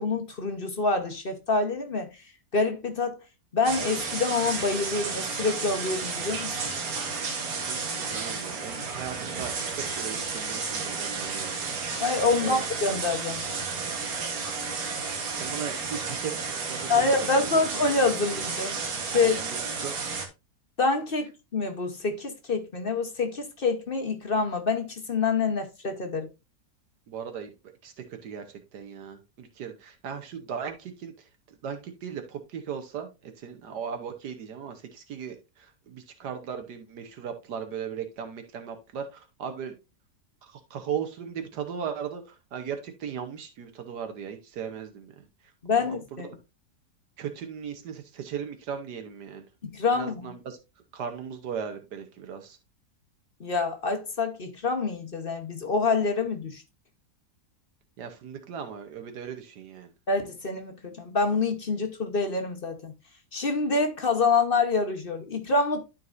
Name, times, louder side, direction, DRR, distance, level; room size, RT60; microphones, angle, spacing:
voice 1, 0.0-2.1 2.5-3.2 3.5-6.5 12.0-13.7 16.9-18.8 19.1-19.4 20.8-26.3 45.6-46.3 49.6-50.3 53.4-56.6 60.1-62.9 63.3-65.8, left 3 dB, 40° left, 1.1 m, -26 dB
sound 1, 3.6-20.3, right 4 dB, 60° right, 1.8 m, -32 dB
voice 2, 7.7-11.6 12.4-12.6 15.4-17.5 17.7-17.8 19.2-19.9 27.1-27.5 27.8-27.9 28.2-28.4 28.7-31.1 31.6-39.7 40.4-45.2 45.8-46.0 46.2-46.3 47.2-49.4 49.9-50.6 50.9-52.6 58.0-59.9, right 7 dB, 80° right, 1.6 m, -37 dB
12.5 x 4.6 x 2.5 m
omnidirectional pair, 1.7 m